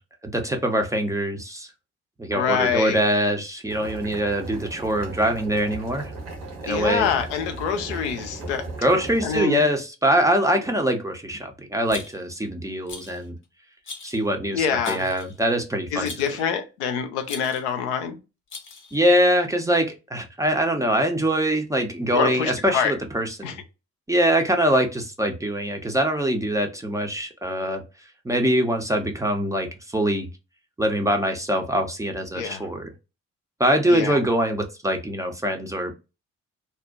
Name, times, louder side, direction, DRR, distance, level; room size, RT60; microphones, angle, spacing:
voice 1, 0.2-1.7 2.2-6.1 6.6-7.1 8.8-13.3 14.0-16.1 18.9-23.6 24.1-27.8 28.2-30.3 30.8-32.9 33.6-35.9, right 1 dB, 10° right, 0.5 m, -23 dB
voice 2, 2.3-3.0 6.7-8.7 9.2-9.6 14.5-15.1 15.9-18.2 22.1-22.9 23.4-23.5 32.3-32.7 33.9-34.2, left 7 dB, 75° left, 0.5 m, -25 dB
Boiling, 3.7-9.4, right 2 dB, 70° right, 0.9 m, -37 dB
Rattle, 11.9-12.4 12.9-13.3 13.8-14.2 14.8-15.4 16.1-16.4 17.2-17.7 18.5-19.0, left 4 dB, 35° left, 0.8 m, -40 dB
2.6 x 2.1 x 2.4 m
figure-of-eight pair, 40°, 36 cm